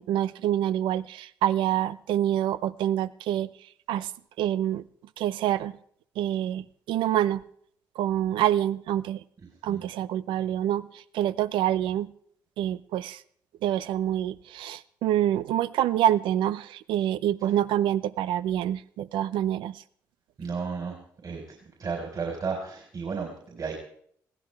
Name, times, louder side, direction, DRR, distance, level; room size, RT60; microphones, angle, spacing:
voice 1, 0.0-3.5 3.9-4.1 4.4-4.8 5.2-5.7 6.2-7.4 8.0-9.2 9.6-12.1 12.6-13.2 13.6-19.8, right 11 dB, 80° right, 16 dB, 0.6 m, -26 dB
voice 2, 20.4-21.0 21.2-23.7, right 5 dB, 55° right, 0 dB, 4.2 m, -33 dB
21.0 x 16.0 x 3.4 m, 0.63 s
hypercardioid pair, 50°, 8 cm